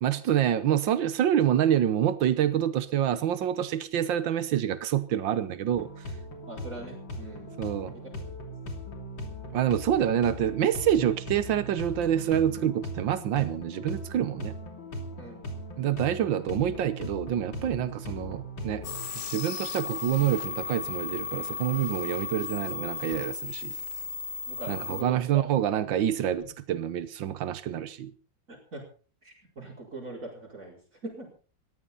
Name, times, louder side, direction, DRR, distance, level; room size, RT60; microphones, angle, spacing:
voice 1, 0.0-5.9 7.6-7.9 9.5-14.5 15.8-18.9 19.3-23.7 24.7-28.1, right 10 dB, 90° right, 1.8 m, -27 dB
sound 1, 5.7-19.1, equal, 85° left, 3.6 m, -39 dB
voice 2, 6.5-7.6 7.9-8.0 15.2-15.5 24.4-25.4 28.5-28.8 29.2-31.3, right 2 dB, 45° right, 5.4 m, -42 dB
sound 2, 18.8-25.0, left 5 dB, 65° left, 2.2 m, -35 dB
20.0 x 14.5 x 4.0 m
omnidirectional pair, 2.0 m